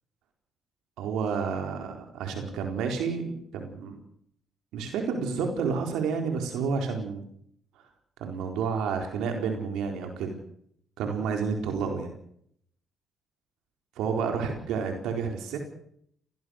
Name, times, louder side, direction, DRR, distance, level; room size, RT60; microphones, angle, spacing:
voice 1, 1.0-4.0 4.7-7.3 8.2-10.4 11.0-12.1 14.0-15.6, right 5 dB, 90° right, 4 dB, 4.3 m, -30 dB
23.5 x 18.5 x 6.6 m, 0.66 s
cardioid pair, 90°, 0 cm